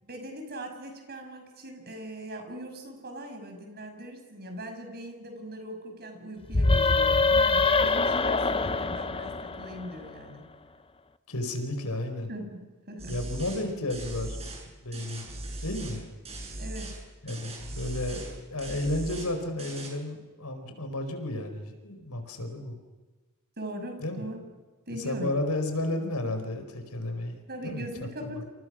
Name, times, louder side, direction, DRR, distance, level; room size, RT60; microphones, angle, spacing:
voice 1, 0.0-10.4 12.3-13.2 16.6-16.9 23.6-24.4 24.9-25.3 27.5-28.4, right 1 dB, 45° right, 4 dB, 6.3 m, -40 dB
sound 1, 6.5-10.1, left 3 dB, 25° left, 0.7 m, -24 dB
voice 2, 11.3-12.3 13.1-14.5 14.8-15.3 15.6-16.0 17.2-22.8 24.0-24.2 24.9-28.1, left 1 dB, 85° left, 7 dB, 4.7 m, -32 dB
sound 2, 13.0-13.6 13.9-14.6 14.9-17.0 17.3-18.3 18.6-19.3 19.6-19.9, right 1 dB, 30° right, 7.7 m, -39 dB
29.0 x 28.0 x 6.4 m, 1.3 s
head